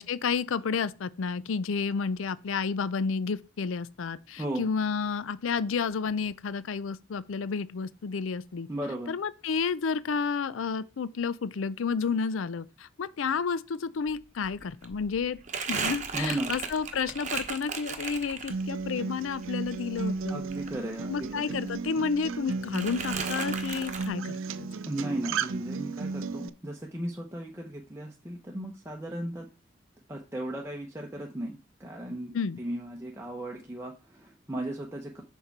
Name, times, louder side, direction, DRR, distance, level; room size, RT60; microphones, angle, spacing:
voice 1, 0.0-8.7 9.1-15.4 15.7-20.4 21.1-24.7 32.3-32.6, left 5 dB, 80° left, 0.5 m, -31 dB
voice 2, 4.4-4.7 8.7-9.1 16.1-16.5 20.3-21.6 24.9-29.5 30.1-35.2, right 1 dB, 15° right, 0.8 m, -36 dB
Crumpling crinkling, 14.1-14.2 14.4-18.9 19.3-21.4 21.7-22.4 22.7-24.1, right 5 dB, 35° right, 1.0 m, -36 dB
Acoustic guitar, 18.5-26.5, right 4 dB, 85° right, 0.5 m, -34 dB
6.6 x 4.7 x 5.9 m
head